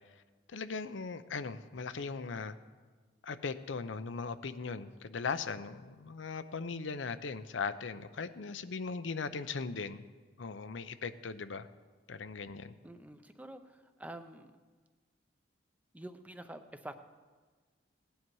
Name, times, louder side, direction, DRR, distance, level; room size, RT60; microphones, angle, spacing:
voice 1, 0.5-2.6 3.2-10.0 10.4-11.7 12.1-12.7, left 4 dB, 80° left, 12 dB, 0.6 m, -39 dB
voice 2, 12.8-14.5 15.9-17.0, right 1 dB, 10° right, 8 dB, 0.6 m, -47 dB
17.5 x 10.5 x 4.7 m, 1.4 s
head